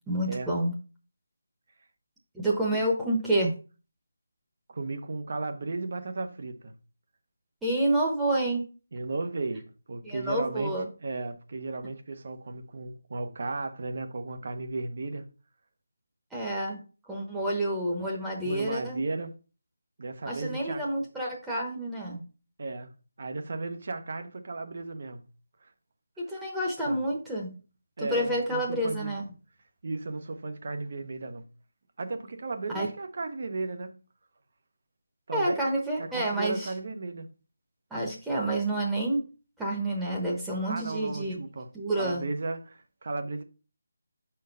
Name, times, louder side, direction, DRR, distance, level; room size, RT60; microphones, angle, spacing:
voice 1, 0.1-0.7 2.3-3.5 7.6-8.7 10.0-10.9 16.3-16.8 17.1-19.0 20.2-22.2 26.2-27.6 28.0-29.3 32.7-32.9 35.3-36.7 37.9-39.2 39.6-41.4 41.7-42.3, right 1 dB, 5° right, 1.0 m, -29 dB
voice 2, 4.7-6.7 8.9-15.3 18.4-19.3 20.0-20.8 22.6-22.9 23.2-25.2 25.6-25.7 26.3-26.4 26.9-27.0 28.0-29.2 29.8-31.4 32.0-34.0 35.3-35.6 36.0-37.3 40.7-41.7 42.0-43.4, right 3 dB, 55° right, 0.9 m, -35 dB
5.3 x 4.4 x 5.3 m
figure-of-eight pair, 165°, 0 cm